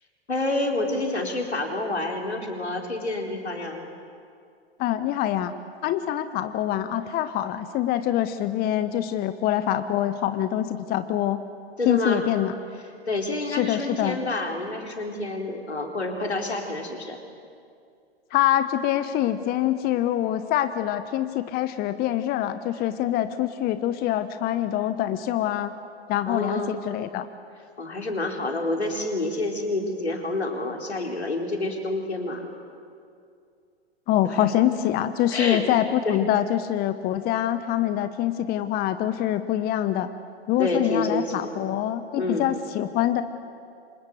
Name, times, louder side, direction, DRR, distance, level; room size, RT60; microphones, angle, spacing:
voice 1, 0.3-3.9 11.8-12.2 13.1-17.2 26.3-26.8 27.8-32.5 34.2-34.4 35.3-35.6 36.0-36.2 40.6-41.5 42.2-42.5, left 2 dB, 85° left, 2 dB, 4.2 m, -28 dB
voice 2, 4.8-5.5 5.8-11.4 11.8-12.5 13.6-14.2 18.3-25.7 26.1-27.3 34.1-40.1 40.5-43.2, left 12 dB, 30° left, 11 dB, 1.1 m, -25 dB
28.5 x 26.0 x 7.8 m, 2.4 s
figure-of-eight pair, 105°, 32 cm